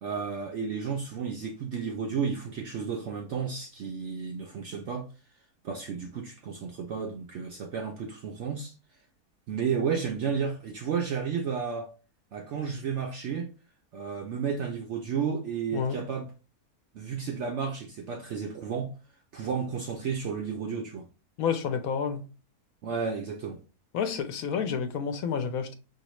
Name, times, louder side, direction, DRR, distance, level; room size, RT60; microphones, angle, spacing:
voice 1, 0.0-5.1 5.6-8.7 9.5-11.9 12.3-13.5 13.9-16.3 16.9-18.9 19.3-21.1 22.8-23.6, right 6 dB, 70° right, 0.7 m, -32 dB
voice 2, 21.4-22.2 23.9-25.7, left 7 dB, 70° left, 1.0 m, -29 dB
5.7 x 2.8 x 3.0 m
omnidirectional pair, 1.7 m